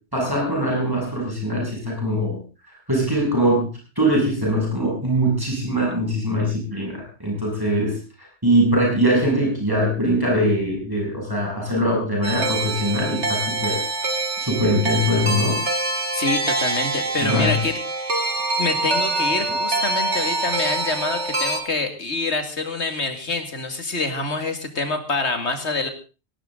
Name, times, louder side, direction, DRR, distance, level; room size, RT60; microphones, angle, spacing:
voice 1, 0.1-2.4 2.7-3.7 4.0-13.9 14.4-15.6 17.2-17.5, equal, 20° right, -3 dB, 7.4 m, -22 dB
sound 1, 12.2-21.6, right 2 dB, 85° right, 2.9 m, -25 dB
voice 2, 16.1-17.7 18.0-18.3 18.6-25.9, left 3 dB, 75° left, 7 dB, 2.6 m, -26 dB
18.0 x 17.5 x 3.9 m, 0.34 s
omnidirectional pair, 1.1 m